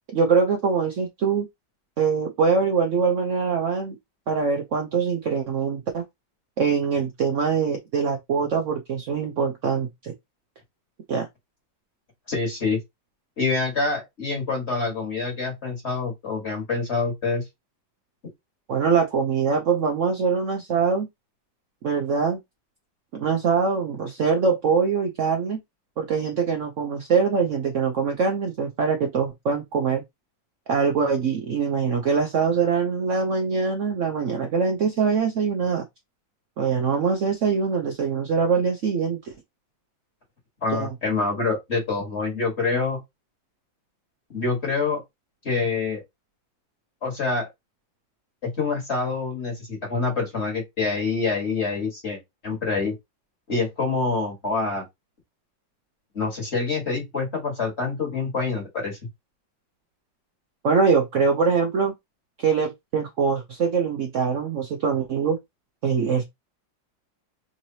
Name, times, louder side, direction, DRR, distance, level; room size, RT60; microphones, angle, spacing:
voice 1, 0.1-1.5 2.0-4.0 4.3-6.1 6.6-10.1 11.1-11.3 18.7-21.1 21.8-22.4 23.1-25.6 26.0-30.0 30.7-35.8 36.6-39.3 40.7-40.9 60.6-61.9 62.4-65.4 65.8-66.2, right 5 dB, 85° right, 0.6 m, -23 dB
voice 2, 12.3-12.8 13.4-17.4 40.6-43.0 44.3-45.0 45.4-46.0 47.0-47.5 48.4-52.9 53.5-54.8 56.1-59.0, left 4 dB, 40° left, 1.5 m, -26 dB
3.8 x 3.0 x 2.7 m
omnidirectional pair, 2.0 m